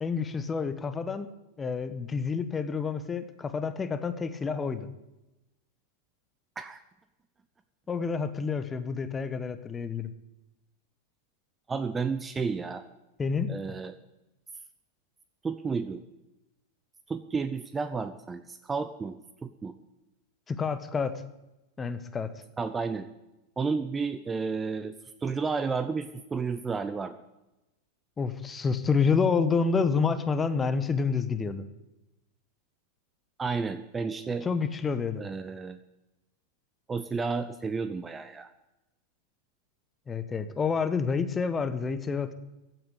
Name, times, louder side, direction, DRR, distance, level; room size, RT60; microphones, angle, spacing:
voice 1, 0.0-1.3 1.6-4.9 7.9-10.1 13.2-13.5 20.5-21.2 21.8-22.4 28.2-31.6 34.4-35.2 40.1-42.3, left 5 dB, 15° left, 12 dB, 1.2 m, -28 dB
voice 2, 11.7-12.9 13.5-13.9 15.4-16.0 17.1-19.7 22.6-23.1 23.6-24.9 25.2-27.2 33.4-34.5 35.2-35.8 36.9-38.5, right 5 dB, 15° right, 11 dB, 0.7 m, -32 dB
15.0 x 9.2 x 8.2 m, 0.97 s
figure-of-eight pair, 90°, 0 cm